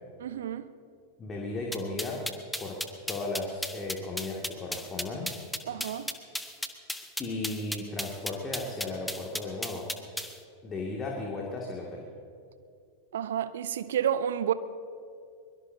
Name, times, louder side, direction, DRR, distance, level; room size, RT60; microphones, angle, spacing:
voice 1, 0.2-0.7 5.7-6.1 13.1-14.5, right 9 dB, 60° right, 0.7 m, -30 dB
voice 2, 1.2-2.2 2.6-2.8 3.1-5.3 7.2-9.9 10.6-12.1, left 2 dB, 20° left, 2.1 m, -35 dB
sound 1, 1.7-10.3, left 1 dB, ahead, 1.0 m, -34 dB
22.5 x 22.5 x 2.7 m
figure-of-eight pair, 90°, 0 cm